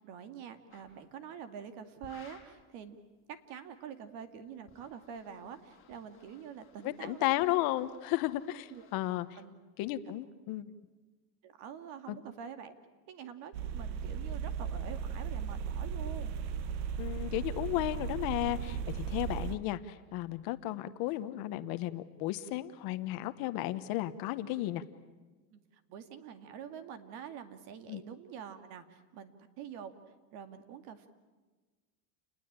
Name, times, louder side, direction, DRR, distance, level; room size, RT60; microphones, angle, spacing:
voice 1, 0.0-3.0 3.3-7.5 8.7-8.9 9.4-9.6 11.4-12.7 13.1-16.4 25.5-29.9 30.3-31.1, right 8 dB, 50° right, 9 dB, 2.3 m, -46 dB
sound 1, 0.7-1.0 2.0-2.6 4.5-9.2, left 7 dB, 25° left, 5.1 m, -60 dB
voice 2, 6.8-9.3 9.8-10.7 12.1-12.2 17.0-24.8 27.9-28.0, left 15 dB, 45° left, 11 dB, 1.1 m, -34 dB
sound 2, 13.5-19.6, right 7 dB, 85° right, 1.5 m, -36 dB
29.5 x 20.5 x 8.8 m, 1.3 s
supercardioid pair, 165°, 50 cm